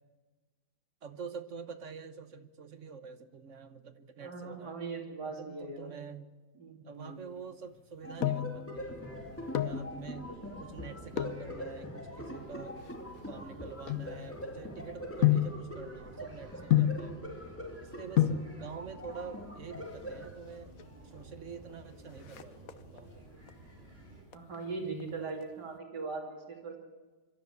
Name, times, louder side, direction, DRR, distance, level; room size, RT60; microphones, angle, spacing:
voice 1, 1.0-4.7 5.2-6.3 6.8-9.0 9.6-10.3 10.6-12.8 13.3-17.2 17.8-18.3 18.6-20.7 21.0-23.3, right 6 dB, 50° right, 11 dB, 1.2 m, -46 dB
voice 2, 4.2-5.9 6.5-7.2 24.3-26.8, right 4 dB, 85° right, 2 dB, 3.5 m, -40 dB
sound 1, 7.8-8.6 9.3-9.9 11.1-11.5 12.2-14.6 15.2-15.6 16.7-17.1 17.9-18.0 18.2-18.5 19.6-20.2 20.5-20.6 20.8-20.9 21.3-21.7 22.0-23.1 23.5-23.9 24.3-25.4 25.7-25.8, left 12 dB, 60° left, 1.4 m, -30 dB
sound 2, 8.0-20.4, left 1 dB, 10° left, 2.3 m, -44 dB
sound 3, 8.8-24.2, right 1 dB, 20° right, 6.3 m, -52 dB
24.5 x 13.0 x 8.3 m, 1.3 s
omnidirectional pair, 1.7 m